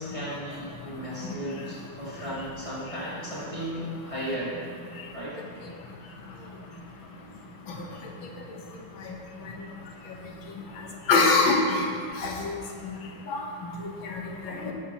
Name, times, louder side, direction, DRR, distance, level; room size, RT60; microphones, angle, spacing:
voice 1, 0.0-4.6 5.1-5.4, equal, 15° right, -10 dB, 2.6 m, -35 dB
voice 2, 11.1-11.9 12.2-12.6 13.3-13.4 14.0-14.7, left 3 dB, 80° left, 0 dB, 1.8 m, -23 dB
12.0 x 9.9 x 3.0 m, 2.2 s
omnidirectional pair, 2.1 m